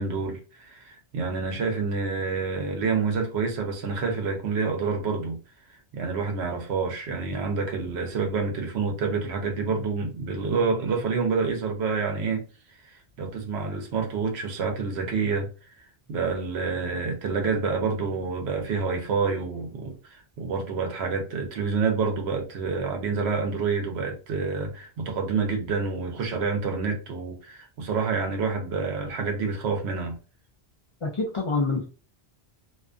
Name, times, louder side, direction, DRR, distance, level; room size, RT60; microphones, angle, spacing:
voice 1, 0.0-5.4 5.9-12.5 12.8-15.5 16.1-30.2, right 4 dB, 75° right, 0.9 m, -28 dB
voice 2, 31.0-31.9, left 3 dB, 50° left, 0.4 m, -26 dB
2.6 x 2.4 x 2.3 m
omnidirectional pair, 1.1 m